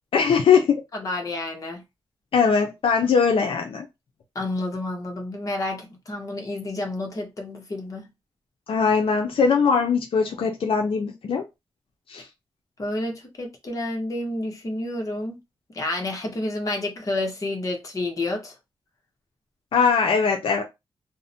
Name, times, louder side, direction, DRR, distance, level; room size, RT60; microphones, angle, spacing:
voice 1, 0.1-0.8 2.3-3.9 8.7-11.4 12.1-12.3 19.7-20.6, left 6 dB, 75° left, 0.5 m, -21 dB
voice 2, 0.9-1.8 4.3-8.1 12.8-15.4 15.7-18.5, left 2 dB, 35° left, 0.8 m, -30 dB
2.5 x 2.1 x 2.6 m
wide cardioid pair, 115°, 9 cm